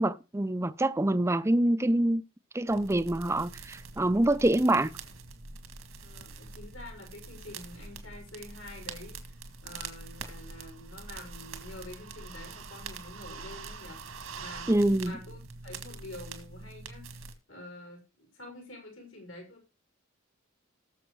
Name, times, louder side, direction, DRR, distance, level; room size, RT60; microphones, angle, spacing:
voice 1, 0.0-2.2 2.5-4.9 14.7-15.2, right 1 dB, 15° right, 0.5 m, -25 dB
sound 1, 2.7-17.3, right 4 dB, 90° right, 2.0 m, -44 dB
voice 2, 6.0-14.0 14.4-14.7 15.0-17.0 17.5-19.7, left 1 dB, 80° left, 6.3 m, -47 dB
19.0 x 7.1 x 3.2 m
head